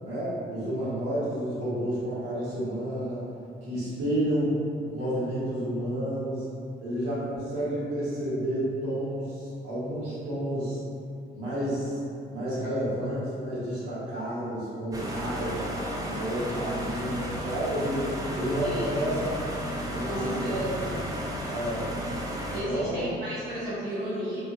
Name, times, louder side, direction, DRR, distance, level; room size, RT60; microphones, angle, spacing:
voice 1, 0.0-3.2 3.6-4.6 4.9-6.4 6.8-10.8 11.3-12.0 12.3-19.2 19.9-20.6 21.5-21.9 22.4-23.0, equal, 90° right, -11 dB, 1.3 m, -30 dB
sound 1, 14.9-22.6, equal, 15° right, 0.4 m, -33 dB
voice 2, 18.6-19.0 20.0-21.0 22.5-24.4, right 1 dB, 60° right, -10 dB, 0.7 m, -33 dB
2.6 x 2.2 x 2.5 m, 2.5 s
cardioid pair, 90°, 20 cm